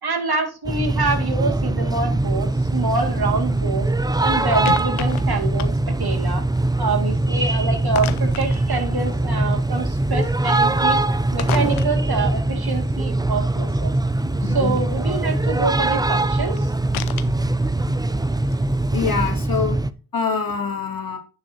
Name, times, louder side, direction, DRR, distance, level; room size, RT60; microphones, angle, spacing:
voice 1, 0.0-3.9 4.2-6.4 6.8-11.0 11.3-13.9 14.5-16.7, right 3 dB, 50° right, 5 dB, 2.3 m, -26 dB
sound 1, 0.6-19.9, right 2 dB, 10° right, 0.6 m, -22 dB
sound 2, 2.2-18.9, left 12 dB, 90° left, 0.8 m, -38 dB
voice 2, 14.4-14.8 18.9-19.8 20.1-21.2, left 5 dB, 45° left, 3 dB, 2.6 m, -25 dB
10.5 x 6.4 x 2.9 m, 0.35 s
supercardioid pair, 40°, 48 cm